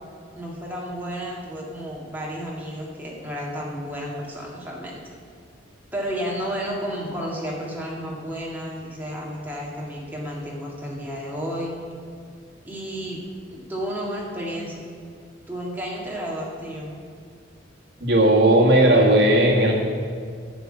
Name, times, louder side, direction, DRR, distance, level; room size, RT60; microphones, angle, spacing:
voice 1, 0.3-5.0 5.9-11.7 12.6-13.2 13.5-14.8 15.5-17.0, equal, 10° right, -4 dB, 1.9 m, -32 dB
voice 2, 18.0-19.7, right 1 dB, 60° right, -1 dB, 1.9 m, -16 dB
11.5 x 6.0 x 8.8 m, 2.1 s
head